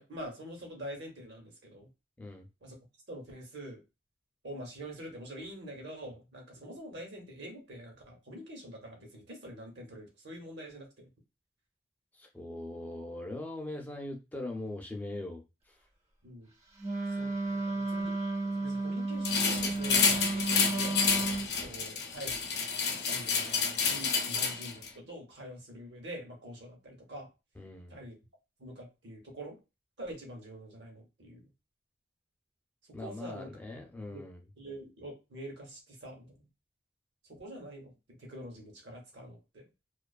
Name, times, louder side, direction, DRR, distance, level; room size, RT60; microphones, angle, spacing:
voice 1, 0.0-1.9 2.6-2.8 3.1-3.8 4.4-11.1 16.2-16.5 17.1-18.1 18.4-21.0 21.6-22.4 23.1-27.3 27.9-28.1 28.6-29.6 30.0-31.4 33.0-33.5 34.1-34.2 34.6-36.5 37.3-37.9 38.2-39.7, equal, 75° right, 2 dB, 0.9 m, -45 dB
voice 2, 12.1-15.8 27.6-28.0 32.9-34.4, left 2 dB, 10° left, 2 dB, 0.4 m, -41 dB
Wind instrument woodwind instrument, 16.8-21.5, right 3 dB, 40° right, 0.6 m, -33 dB
sound 1, 19.2-24.9, left 5 dB, 65° left, 0.6 m, -29 dB
2.5 x 2.3 x 2.3 m, 0.27 s
head